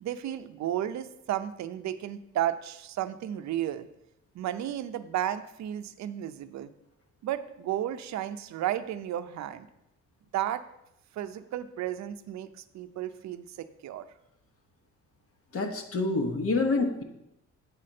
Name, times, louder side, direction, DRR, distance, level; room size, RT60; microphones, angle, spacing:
voice 1, 0.0-3.9 4.3-6.7 7.2-9.7 10.3-10.6 11.1-12.5 12.7-14.0, right 11 dB, 65° right, 10 dB, 0.6 m, -33 dB
voice 2, 15.5-17.0, left 3 dB, 50° left, 5 dB, 1.2 m, -27 dB
8.5 x 4.2 x 6.4 m, 0.84 s
cardioid pair, 90°, 30 cm